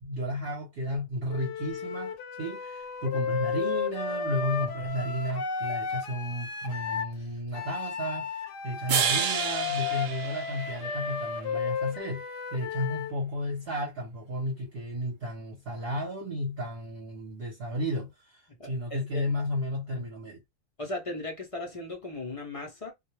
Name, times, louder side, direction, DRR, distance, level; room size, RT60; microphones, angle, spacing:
voice 1, 0.0-12.2 12.5-20.4, equal, 50° right, 0.9 m, -33 dB
Wind instrument woodwind instrument, 1.3-7.1 7.5-13.2, left 6 dB, 70° left, 0.8 m, -33 dB
sound 1, 8.9-11.2, right 7 dB, 80° right, 0.4 m, -30 dB
voice 2, 18.6-19.3 20.8-22.9, left 2 dB, 50° left, 0.4 m, -37 dB
2.2 x 2.1 x 3.0 m
omnidirectional pair, 1.4 m